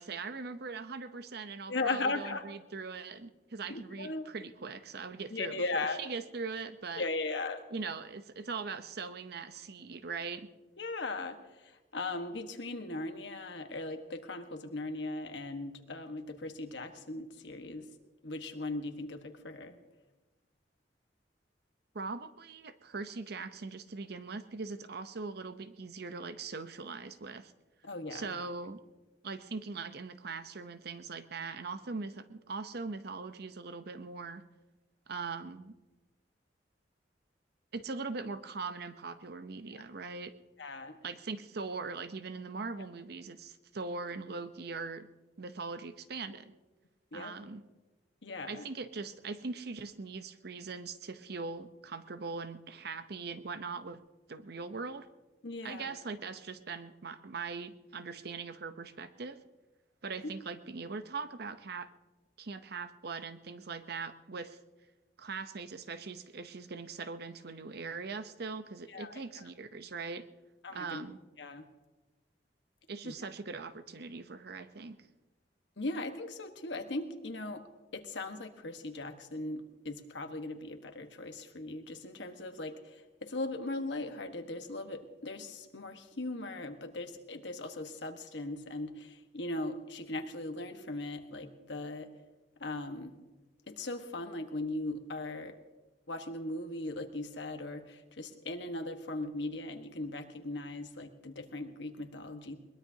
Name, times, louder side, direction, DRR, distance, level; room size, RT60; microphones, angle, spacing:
voice 1, 0.0-7.0 7.7-10.5 21.9-27.5 28.1-28.8 29.2-34.4 35.1-35.8 37.7-40.3 41.0-45.1 45.4-46.5 47.1-47.6 48.5-54.0 54.3-55.1 55.6-59.4 60.0-61.9 62.4-64.6 65.2-70.3 70.7-71.2 72.9-75.0, right 4 dB, 65° right, 11 dB, 0.8 m, -41 dB
voice 2, 1.7-2.4 3.7-4.3 5.3-6.0 6.9-7.6 10.8-17.9 18.2-19.8 27.8-28.3 40.6-41.0 47.1-47.3 48.2-48.7 55.4-55.9 60.2-60.3 68.9-69.2 70.6-71.0 71.4-71.6 73.0-73.1 75.8-77.7 77.9-92.1 92.6-93.1 93.7-95.6 96.1-102.6, left 2 dB, 85° left, 6 dB, 1.4 m, -38 dB
21.5 x 20.5 x 2.8 m, 1.2 s
head